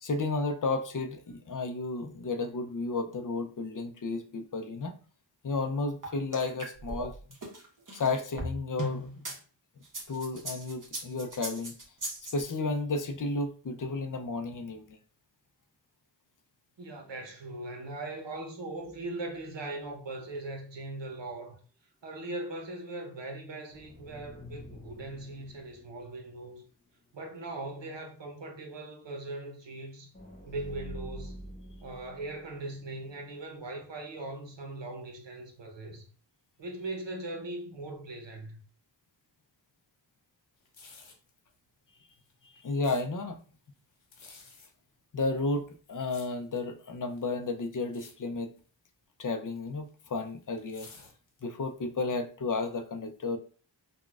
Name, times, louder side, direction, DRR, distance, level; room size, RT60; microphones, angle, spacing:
voice 1, 0.0-5.0 5.4-7.1 7.9-9.1 10.1-11.8 12.3-15.0 42.4-43.4 45.1-48.5 49.2-50.9 51.4-53.4, left 3 dB, 45° left, 0.5 m, -32 dB
sound 1, 6.0-9.4 9.8-12.4, right 1 dB, 45° right, 1.1 m, -38 dB
voice 2, 16.8-21.6 22.0-26.6 27.1-30.1 30.5-31.4 31.8-36.0 36.6-38.6, right 2 dB, 70° right, 0.9 m, -40 dB
sound 2, 18.7-20.8 21.1-21.2 23.7-27.1 27.5-27.6 30.1-33.5, equal, 15° left, 1.1 m, -48 dB
sound 3, 40.6-41.3 42.1-43.0 44.0-44.7 45.5-46.7 47.1-47.5 47.8-48.1 48.4-48.7 49.6-51.6 52.1-52.2, left 4 dB, 85° left, 0.8 m, -52 dB
3.8 x 2.2 x 2.3 m
wide cardioid pair, 45°, 46 cm